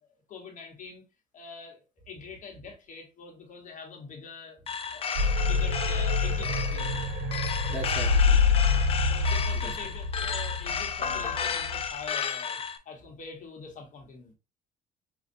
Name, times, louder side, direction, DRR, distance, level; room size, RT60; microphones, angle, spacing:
voice 1, 0.3-1.0 1.3-4.6 4.9-7.1 9.1-12.6 12.8-14.3, left 5 dB, 50° left, 1.0 m, -44 dB
sound 1, 4.7-12.8, left 7 dB, 35° left, 0.5 m, -33 dB
sound 2, 5.2-11.9, left 4 dB, 70° right, 0.6 m, -26 dB
voice 2, 7.7-8.4 9.5-9.8, right 3 dB, 10° right, 1.4 m, -37 dB
5.2 x 2.2 x 2.5 m
cardioid pair, 110°, 17 cm